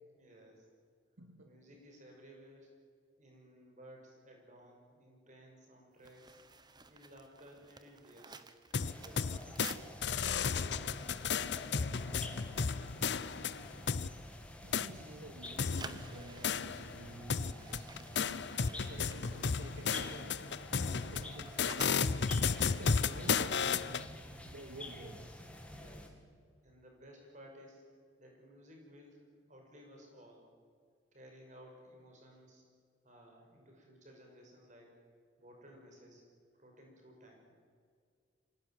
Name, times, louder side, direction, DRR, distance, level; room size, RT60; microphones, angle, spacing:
voice 1, 0.1-0.7 1.4-2.7 3.2-6.4 6.9-8.4 8.8-9.9 10.2-13.3 25.7-26.2 26.6-27.8 28.2-30.5 31.1-32.6 33.0-35.0 35.4-36.2 36.5-37.5, equal, 40° right, 1 dB, 6.2 m, -57 dB
voice 2, 1.2-1.5 14.6-18.2 18.7-20.4 20.7-22.3 22.6-24.1 24.5-25.3, right 1 dB, 75° right, 4 dB, 2.3 m, -51 dB
sound 1, 6.0-12.1 12.4-12.6 13.0-13.4 13.9-15.1 15.4-20.1 20.4-24.9 25.2-25.4, right 4 dB, 20° right, 1.2 m, -54 dB
sound 2, 8.7-9.8 10.0-14.1 14.7-14.9 15.6-17.0 17.3-24.1, left 5 dB, 60° left, 0.7 m, -33 dB
sound 3, 8.8-26.1, left 1 dB, 5° left, 2.4 m, -49 dB
25.5 x 17.5 x 9.3 m, 2.1 s
head